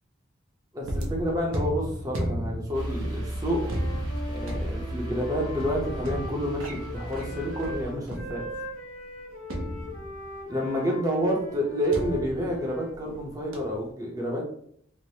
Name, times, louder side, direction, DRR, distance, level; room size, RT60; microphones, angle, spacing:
voice 1, 0.7-3.8 4.3-8.5 10.5-14.5, equal, 15° right, -2 dB, 0.6 m, -29 dB
sound 1, 0.8-8.8 9.5-10.5 11.9-13.2 13.5-13.9, equal, 90° right, 0.6 m, -35 dB
sound 2, 2.7-7.9, right 1 dB, 65° right, 1.1 m, -35 dB
Wind instrument woodwind instrument, 3.4-7.8 8.1-13.0, equal, 60° left, 1.2 m, -41 dB
3.2 x 2.0 x 2.7 m, 0.65 s
head